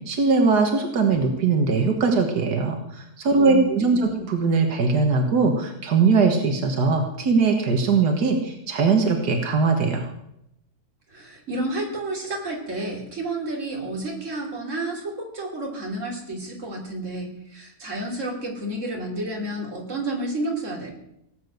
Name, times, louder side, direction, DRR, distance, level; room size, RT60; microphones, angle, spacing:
voice 1, 0.1-10.1, right 4 dB, 90° right, 4 dB, 2.0 m, -21 dB
voice 2, 3.4-4.2 11.1-20.9, right 2 dB, 50° right, 0 dB, 3.5 m, -31 dB
18.0 x 7.8 x 7.9 m, 0.81 s
omnidirectional pair, 1.7 m